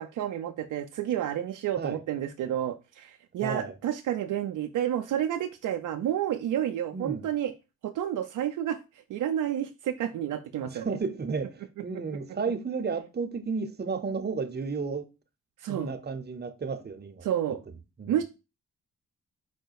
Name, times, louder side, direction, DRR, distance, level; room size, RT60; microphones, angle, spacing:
voice 1, 0.0-7.5 7.8-8.8 9.1-10.9 15.6-15.9 17.2-17.6 18.1-18.2, right 10 dB, 60° right, 0.5 m, -30 dB
voice 2, 3.4-3.7 6.9-7.2 10.6-15.1 15.7-17.3 18.0-18.2, right 4 dB, 30° right, 0.8 m, -33 dB
4.9 x 2.2 x 4.6 m
hypercardioid pair, 45°, 34 cm